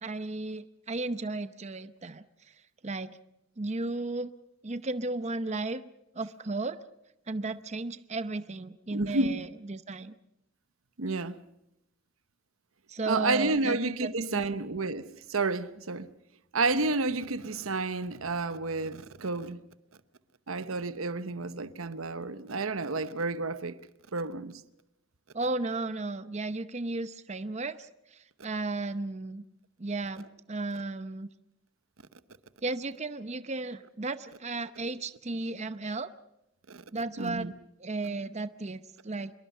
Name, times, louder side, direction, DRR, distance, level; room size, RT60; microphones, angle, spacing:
voice 1, 0.0-2.2 2.8-3.2 3.6-4.3 4.6-5.8 6.1-6.8 7.3-10.1 12.9-14.6 25.3-29.4 29.8-31.3 32.6-36.1 36.9-37.5 37.8-39.3, right 3 dB, 35° right, 0.8 m, -34 dB
voice 2, 8.9-9.3 11.0-11.4 13.1-16.1 16.5-19.6 20.5-23.8 24.1-24.6 36.7-36.8 37.2-37.5, right 3 dB, 90° right, 1.0 m, -30 dB
25.5 x 22.5 x 5.6 m
head